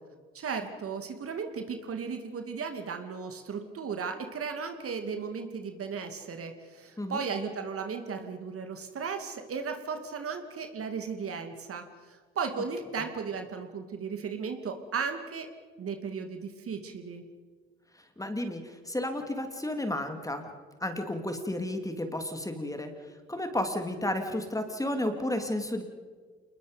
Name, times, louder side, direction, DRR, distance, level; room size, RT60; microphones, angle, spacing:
voice 1, 0.3-15.5 15.8-17.2, right 5 dB, 45° right, 6 dB, 2.7 m, -35 dB
voice 2, 18.2-20.4 20.8-22.9 23.3-25.8, left 1 dB, 10° left, 6 dB, 3.1 m, -32 dB
28.5 x 20.5 x 5.3 m, 1.5 s
hypercardioid pair, 60°, 32 cm